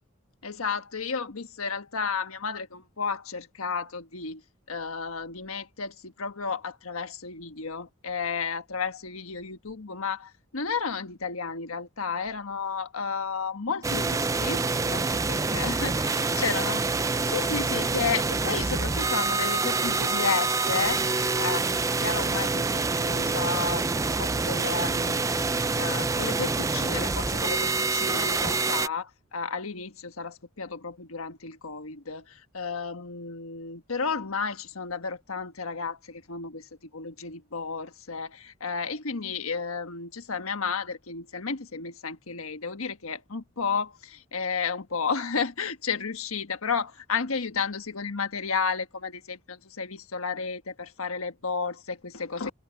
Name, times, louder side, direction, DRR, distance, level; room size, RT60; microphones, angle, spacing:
voice 1, 0.4-4.4 4.7-16.8 17.2-21.0 21.4-52.5, left 5 dB, 85° left, 1.4 m, -32 dB
sound 1, 13.8-28.9, right 3 dB, 15° right, 0.4 m, -26 dB
head